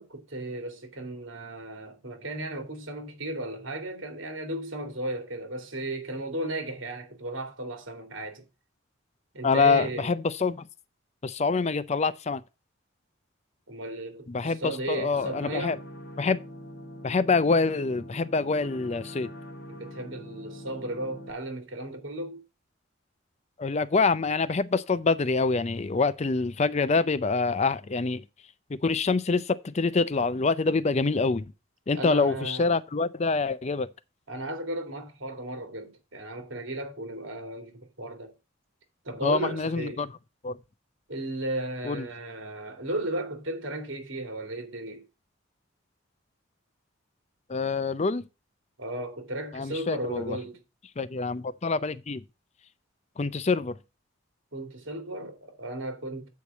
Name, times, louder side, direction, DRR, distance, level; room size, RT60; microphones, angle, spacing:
voice 1, 0.0-8.4 9.3-10.1 13.7-15.8 19.7-22.4 31.9-32.7 34.3-38.3 39.0-40.0 41.1-45.0 48.8-50.6 54.5-56.3, right 1 dB, 75° right, 2.4 m, -35 dB
voice 2, 9.4-10.7 11.2-12.4 14.3-15.8 16.2-16.4 17.0-19.3 23.6-28.2 28.7-31.4 31.9-33.9 39.2-40.1 40.4-40.6 41.8-42.1 47.5-48.2 49.5-50.4 51.0-52.2 53.2-53.8, left 4 dB, 35° left, 0.5 m, -26 dB
sound 1, 15.1-21.3, equal, 60° left, 1.7 m, -43 dB
8.2 x 4.7 x 7.1 m
head